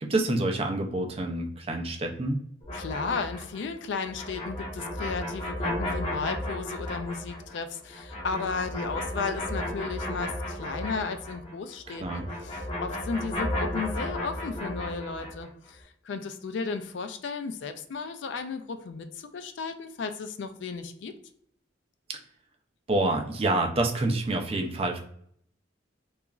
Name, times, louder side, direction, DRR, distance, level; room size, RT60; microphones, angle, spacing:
voice 1, 0.0-2.4 11.9-12.3 22.1-22.2 22.9-25.0, right 2 dB, 30° right, 3 dB, 0.4 m, -27 dB
sound 1, 2.6-11.6 11.8-15.5, left 1 dB, 30° left, 0.6 m, -34 dB
voice 2, 2.7-21.1, left 4 dB, 65° left, 8 dB, 0.3 m, -34 dB
2.9 x 2.4 x 2.3 m, 0.65 s
head